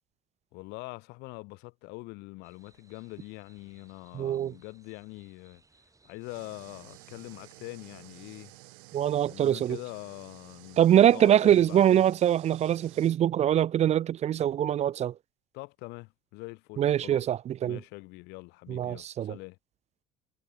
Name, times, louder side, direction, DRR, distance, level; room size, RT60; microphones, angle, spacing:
voice 1, 0.5-5.6 6.0-8.5 9.3-10.8 11.1-12.0 15.5-17.2 17.6-19.6, left 25 dB, 75° left, 2.1 m, -44 dB
sound 1, 2.4-7.6, right 3 dB, 20° right, 7.7 m, -65 dB
voice 2, 4.1-4.5 8.9-9.8 10.8-15.1 16.8-17.8 18.7-19.3, right 10 dB, 40° right, 0.4 m, -23 dB
sound 2, 6.2-13.2, right 40 dB or more, 80° right, 2.6 m, -53 dB
supercardioid pair, 80°, 17 cm